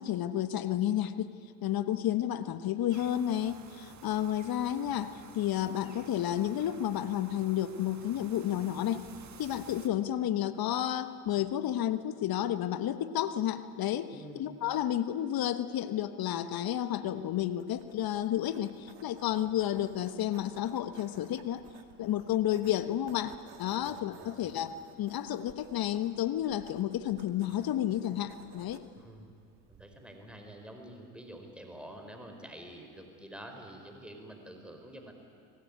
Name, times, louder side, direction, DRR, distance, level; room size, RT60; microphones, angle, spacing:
voice 1, 0.0-1.3 1.6-9.1 9.4-21.6 22.0-23.3 23.6-24.7 25.0-28.8, left 11 dB, 50° left, 12 dB, 1.3 m, -31 dB
sound 1, 2.9-9.9, right 7 dB, 40° right, 1.9 m, -52 dB
voice 2, 14.1-14.4 23.8-24.5 28.9-29.3 29.7-35.1, right 1 dB, ahead, 3 dB, 4.5 m, -48 dB
sound 2, 17.6-30.3, right 7 dB, 55° right, 2.6 m, -57 dB
24.5 x 18.0 x 9.7 m, 2.3 s
hypercardioid pair, 75°, 45 cm